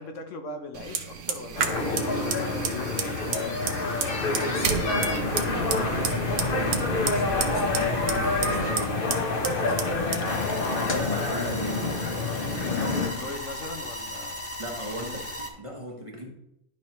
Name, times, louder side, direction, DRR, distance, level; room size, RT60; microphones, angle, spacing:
voice 1, 0.0-3.7 9.6-9.9 12.5-14.5, left 3 dB, 65° left, 6 dB, 1.1 m, -39 dB
Fire, 0.7-12.6, right 6 dB, 65° right, 1.1 m, -33 dB
sound 1, 1.6-13.1, left 3 dB, 45° left, 1.2 m, -27 dB
voice 2, 4.4-9.1 9.3-13.2 14.6-16.4, equal, 25° right, 0 dB, 0.9 m, -38 dB
sound 2, 10.2-15.5, equal, 10° left, 1.2 m, -37 dB
11.5 x 4.8 x 3.0 m, 0.81 s
omnidirectional pair, 1.4 m